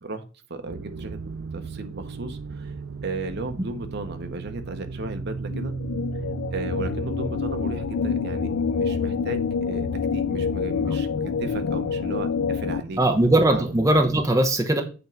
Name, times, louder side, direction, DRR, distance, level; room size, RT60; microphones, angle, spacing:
voice 1, 0.5-1.2 1.5-2.7 3.0-5.7 6.5-9.9 10.1-11.1 11.4-13.0 13.5-13.6, right 2 dB, 60° right, 7 dB, 0.9 m, -35 dB
sound 1, 0.6-14.3, right 5 dB, 80° right, 0.5 m, -37 dB
sound 2, 5.4-12.8, left 6 dB, 85° left, 0.3 m, -27 dB
voice 2, 13.0-14.8, right 1 dB, 15° right, 3 dB, 0.8 m, -19 dB
8.1 x 3.1 x 5.2 m, 0.34 s
head